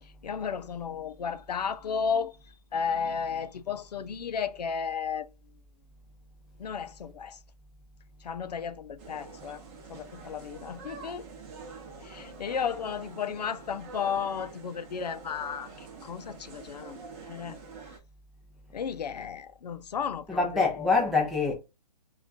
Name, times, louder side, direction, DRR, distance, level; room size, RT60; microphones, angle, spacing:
voice 1, 0.0-5.3 6.6-7.4 8.2-9.6 9.9-11.3 12.0-17.9 18.7-21.1, left 6 dB, 90° left, 0.4 m, -34 dB
sound 1, 9.0-18.0, right 4 dB, 25° right, 0.8 m, -46 dB
voice 2, 20.3-21.5, left 4 dB, ahead, 0.4 m, -25 dB
2.3 x 2.2 x 3.9 m
hypercardioid pair, 150°, 20 cm